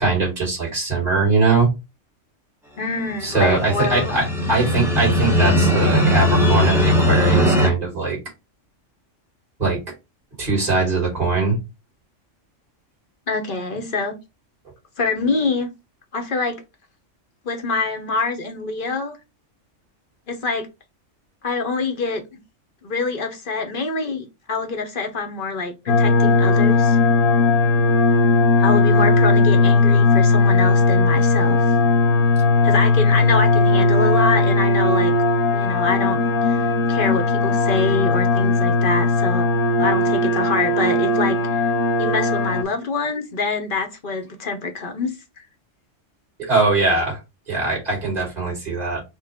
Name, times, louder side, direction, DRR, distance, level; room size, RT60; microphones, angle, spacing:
voice 1, 0.0-1.7 3.2-8.2 9.6-9.8 10.4-11.6 46.4-47.2 47.5-49.0, right 3 dB, 30° right, 2.9 m, -21 dB
voice 2, 2.8-4.1 4.4-4.5 13.3-14.2 15.0-15.7 16.1-16.6 17.4-19.2 20.3-20.7 21.4-22.4 22.8-27.0 28.6-31.7 32.6-35.1 35.5-39.5 39.8-41.4 42.0-45.1, left 3 dB, 45° left, 1.1 m, -25 dB
sound 1, 3.2-7.7, left 1 dB, ahead, 1.0 m, -19 dB
sound 2, 25.9-42.6, left 3 dB, 85° left, 1.3 m, -17 dB
5.6 x 2.5 x 3.6 m
omnidirectional pair, 1.3 m